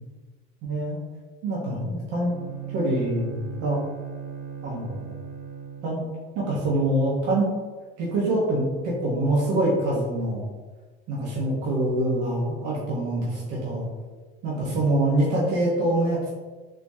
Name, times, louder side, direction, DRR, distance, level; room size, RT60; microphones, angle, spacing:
voice 1, 0.6-1.0 1.4-2.3 2.7-3.8 4.6-5.2 5.8-6.1 6.3-7.5 8.0-10.5 11.1-13.9 14.4-16.3, right 1 dB, 65° right, -5 dB, 1.2 m, -25 dB
Bowed string instrument, 2.1-6.2, right 8 dB, 80° right, 0.6 m, -38 dB
4.2 x 2.9 x 2.7 m, 1.3 s
supercardioid pair, 110°, 32 cm